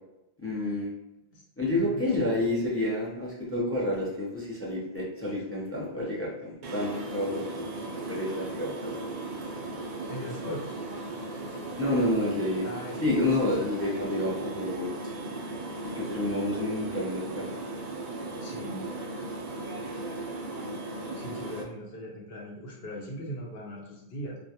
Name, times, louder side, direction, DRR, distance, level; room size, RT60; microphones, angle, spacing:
voice 1, 0.4-0.9 1.6-7.7 8.1-9.0 11.8-12.7 13.0-14.9 15.8-17.5 18.3-18.4, left 1 dB, 20° left, -5 dB, 0.3 m, -29 dB
voice 2, 1.7-2.0 10.1-10.8 12.6-13.5 18.4-18.9 21.1-24.4, equal, 70° left, -2 dB, 0.9 m, -39 dB
sound 1, 6.6-21.6, right 2 dB, 60° right, 0.4 m, -37 dB
2.3 x 2.2 x 2.7 m, 0.88 s
omnidirectional pair, 1.1 m